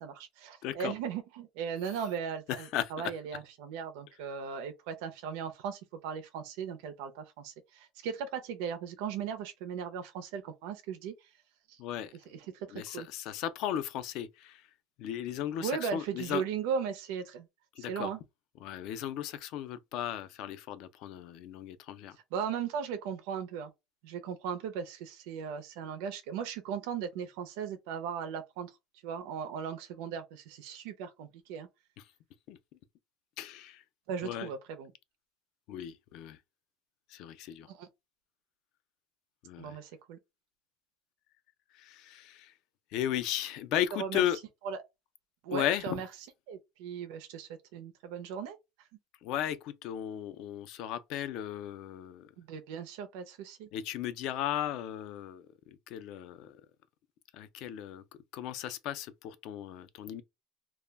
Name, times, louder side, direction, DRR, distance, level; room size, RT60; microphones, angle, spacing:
voice 1, 0.0-11.3 11.7-11.8 12.3-13.1 15.6-17.5 17.8-18.2 22.3-23.7 24.0-28.7 29.0-31.7 34.1-34.9 37.7-37.9 39.6-40.2 44.0-44.2 44.6-44.8 45.4-46.1 46.5-48.6 52.4-53.7, right 7 dB, 75° right, 0.4 m, -37 dB
voice 2, 0.6-0.9 2.5-3.1 11.8-12.1 12.7-14.7 15.0-16.4 17.8-18.1 18.6-22.2 32.5-32.6 33.4-33.8 34.2-34.5 35.7-36.4 37.1-37.7 39.4-39.8 41.7-42.5 42.9-44.4 45.5-46.0 49.2-52.3 53.7-56.6 57.3-58.0 58.3-60.2, left 11 dB, 50° left, 0.3 m, -36 dB
2.2 x 2.0 x 3.2 m
cardioid pair, 180°, 0 cm